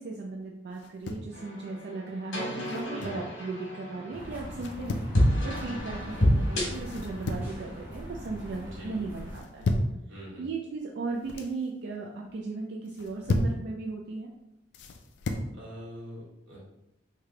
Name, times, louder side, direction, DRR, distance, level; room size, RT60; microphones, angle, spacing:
voice 1, 0.0-5.0 5.4-9.7 10.4-14.3, right 3 dB, 55° right, -1 dB, 0.3 m, -36 dB
sound 1, 0.8-1.3 2.6-3.3 4.6-5.1 6.8-7.6 8.0-8.5 9.3-10.0 11.0-11.5 12.9-13.6 14.7-15.5, left 2 dB, 60° left, 0.3 m, -32 dB
sound 2, 1.3-7.8, equal, 85° left, 1.2 m, -30 dB
voice 2, 2.9-3.2 8.6-9.0 10.1-10.5 15.5-16.7, equal, 85° right, -5 dB, 1.3 m, -44 dB
sound 3, 4.1-9.4, equal, 10° right, 0.8 m, -41 dB
3.2 x 2.2 x 3.6 m, 0.87 s
head